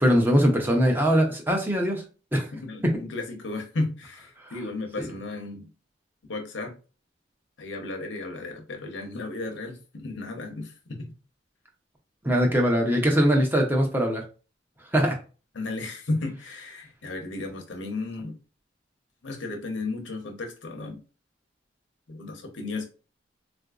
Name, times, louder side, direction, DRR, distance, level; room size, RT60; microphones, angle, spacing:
voice 1, 0.0-2.0 2.3-2.5 4.4-4.5 5.0-5.1 12.2-14.2 14.9-15.2, equal, 10° right, 0.6 m, -21 dB
voice 2, 2.5-5.7 6.3-6.7 7.6-10.7 15.5-18.4 19.2-21.0 22.1-22.8, left 2 dB, 75° left, 0.7 m, -34 dB
3.7 x 2.5 x 2.3 m
head